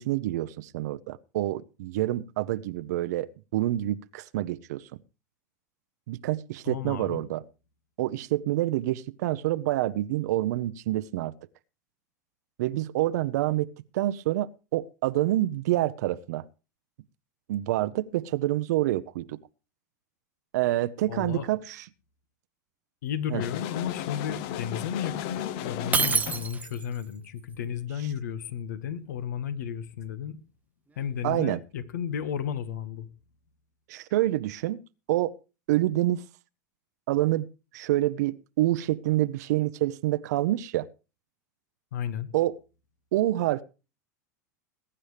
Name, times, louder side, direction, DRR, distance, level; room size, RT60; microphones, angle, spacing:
voice 1, 0.0-4.9 6.1-7.4 8.0-11.3 12.6-16.4 17.5-19.4 20.5-21.8 23.3-23.4 31.2-31.6 33.9-34.8 35.1-35.3 35.7-36.2 37.1-37.5 37.7-40.9 42.3-42.5 43.1-43.6, right 15 dB, 70° right, 0.7 m, -27 dB
voice 2, 6.6-7.2 21.1-21.5 23.0-30.4 31.0-33.1 41.9-42.3, left 8 dB, 75° left, 1.5 m, -33 dB
sound 1, 23.4-26.5, left 11 dB, 55° left, 0.9 m, -35 dB
Shatter, 25.9-27.0, right 5 dB, 15° right, 0.8 m, -26 dB
21.0 x 10.0 x 3.3 m
hypercardioid pair, 95°, 9 cm